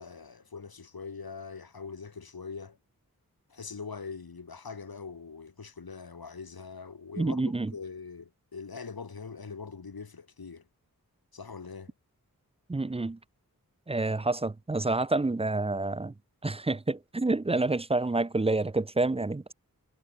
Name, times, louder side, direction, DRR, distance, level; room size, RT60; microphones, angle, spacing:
voice 1, 0.0-2.8 3.5-7.4 7.7-10.7 11.3-11.9, left 5 dB, 90° left, 2.0 m, -42 dB
voice 2, 7.2-7.7 12.7-13.2 13.9-16.1 16.4-19.5, right 2 dB, 15° right, 0.5 m, -28 dB
wide cardioid pair, 50°, 35 cm